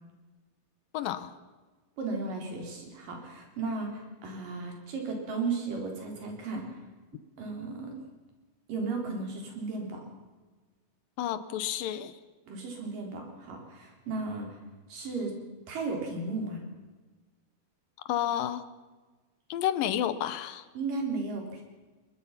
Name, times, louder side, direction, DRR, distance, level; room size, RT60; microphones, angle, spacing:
voice 1, 0.9-1.3 11.2-12.1 18.1-18.6 19.5-20.6, left 11 dB, 75° left, 14 dB, 2.6 m, -30 dB
voice 2, 2.0-6.6 7.4-8.0 8.7-10.0 12.5-14.6 14.9-15.4 15.7-16.6 20.8-21.6, right 3 dB, 65° right, 1 dB, 5.3 m, -35 dB
22.5 x 21.5 x 5.8 m, 1.3 s
omnidirectional pair, 4.2 m